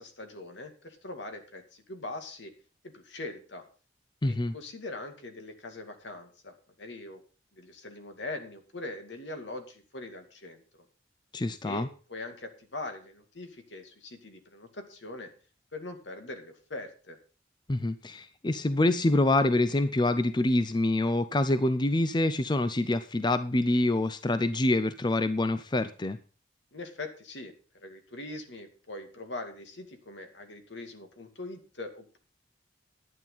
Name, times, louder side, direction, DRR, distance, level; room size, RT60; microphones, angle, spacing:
voice 1, 0.0-2.5 2.8-3.6 4.2-7.2 7.5-10.6 11.6-15.3 15.7-17.2 26.7-27.5 27.8-32.2, left 2 dB, 75° left, 6 dB, 2.3 m, -42 dB
voice 2, 4.2-4.5 11.3-11.9 17.7-26.2, left 2 dB, 25° left, 12 dB, 0.5 m, -26 dB
11.0 x 9.1 x 5.6 m, 0.37 s
head